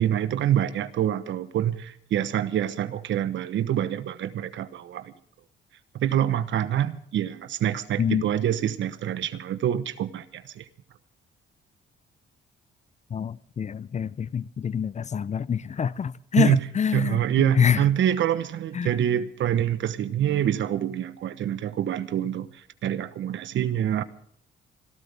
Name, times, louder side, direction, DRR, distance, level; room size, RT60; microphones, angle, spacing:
voice 1, 0.0-5.1 5.9-10.7 16.4-16.6 16.9-24.0, right 10 dB, 70° right, 1.1 m, -26 dB
voice 2, 13.1-17.8 18.7-19.0, left 7 dB, 35° left, 0.6 m, -26 dB
27.5 x 12.5 x 3.5 m
cardioid pair, 90°, 20 cm